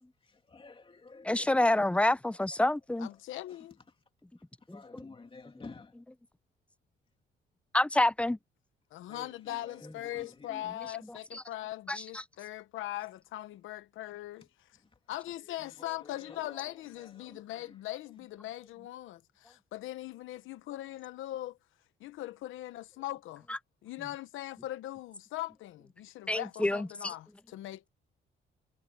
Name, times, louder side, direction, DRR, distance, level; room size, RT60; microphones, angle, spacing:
voice 1, 0.2-1.5 2.3-2.6 3.5-3.6 4.7-6.0 9.1-10.6 15.6-17.7, left 4 dB, 25° left, 2.8 m, -52 dB
voice 2, 1.2-3.1 4.7-5.0 7.7-8.4 11.9-12.2 26.3-26.9, left 1 dB, 5° left, 0.5 m, -27 dB
voice 3, 3.0-3.8 8.9-14.8 15.1-21.6 22.0-23.5 23.8-27.9, left 14 dB, 85° left, 1.0 m, -41 dB
cardioid pair, 90°, 20 cm